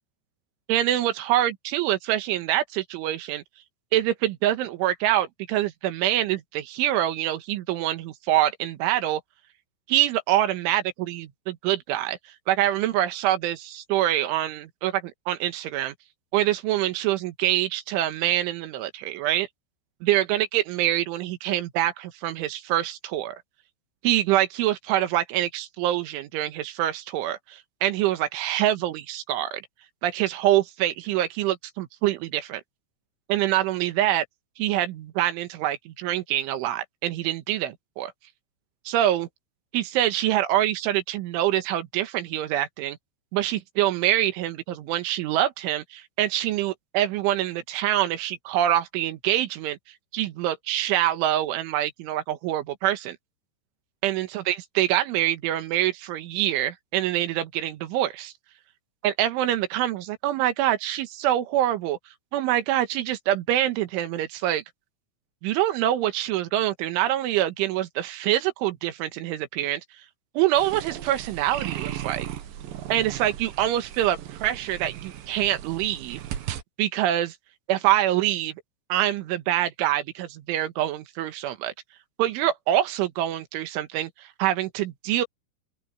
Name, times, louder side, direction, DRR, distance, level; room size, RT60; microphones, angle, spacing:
voice 1, 0.7-3.4 3.9-9.2 9.9-12.2 12.5-15.9 16.3-19.5 20.0-23.4 24.0-29.6 30.0-32.6 33.3-34.3 34.6-38.1 38.9-39.3 39.7-43.0 43.3-49.8 50.1-53.2 54.0-58.3 59.0-62.0 62.3-64.6 65.4-69.8 70.4-72.3 72.9-76.2 76.8-77.4 77.7-78.6 78.9-81.7 82.2-85.3, right 13 dB, 80° right, 3.8 m, -25 dB
sound 1, 70.5-76.6, right 11 dB, 65° right, 2.4 m, -36 dB
open air
omnidirectional pair, 5.5 m